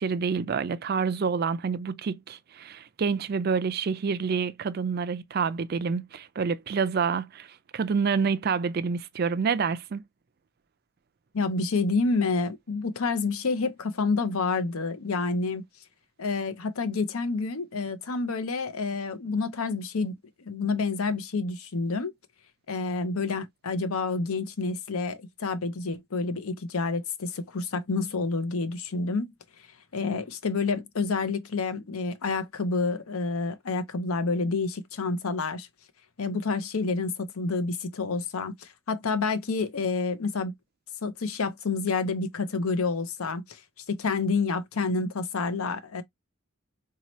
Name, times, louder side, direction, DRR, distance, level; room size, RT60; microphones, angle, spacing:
voice 1, 0.0-10.0, right 5 dB, 45° right, 0.4 m, -28 dB
voice 2, 11.3-15.6 16.2-20.2 20.4-22.1 22.7-29.3 29.9-35.7 36.2-40.5 41.0-43.6 43.9-46.0, left 4 dB, 75° left, 0.7 m, -28 dB
4.2 x 2.8 x 3.0 m
head